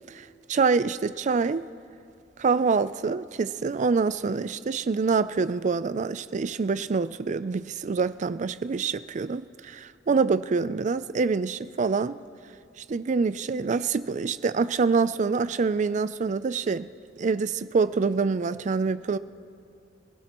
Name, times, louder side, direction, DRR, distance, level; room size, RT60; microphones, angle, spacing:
voice 1, 0.1-1.7 2.4-12.2 12.9-16.9 17.2-19.2, right 4 dB, 40° right, 0.4 m, -26 dB
28.5 x 16.0 x 3.0 m
head